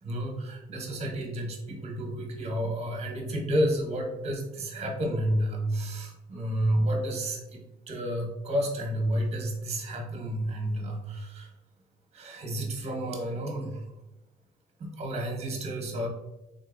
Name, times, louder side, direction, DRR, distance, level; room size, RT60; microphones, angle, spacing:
voice 1, 0.0-11.5 12.1-13.8 14.8-16.1, right 1 dB, 40° right, 2 dB, 0.9 m, -31 dB
3.7 x 2.7 x 2.5 m, 0.99 s
cardioid pair, 110°, 17 cm